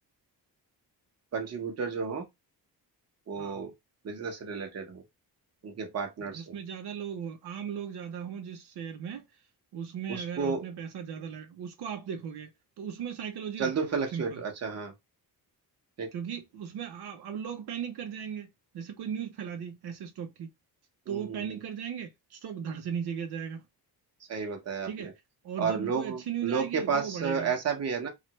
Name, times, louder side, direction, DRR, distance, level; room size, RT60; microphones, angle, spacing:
voice 1, 1.3-2.2 3.3-3.7 4.0-5.0 5.6-6.6 10.1-10.6 13.6-14.9 16.0-16.1 21.1-21.4 24.3-25.1 25.6-28.1, right 5 dB, 40° right, 0.9 m, -32 dB
voice 2, 6.2-9.3 9.7-12.5 12.8-14.4 16.1-20.5 21.1-23.6 24.8-25.1 25.4-27.5, right 8 dB, 80° right, 0.8 m, -37 dB
3.2 x 2.5 x 2.9 m
wide cardioid pair, 175°, 38 cm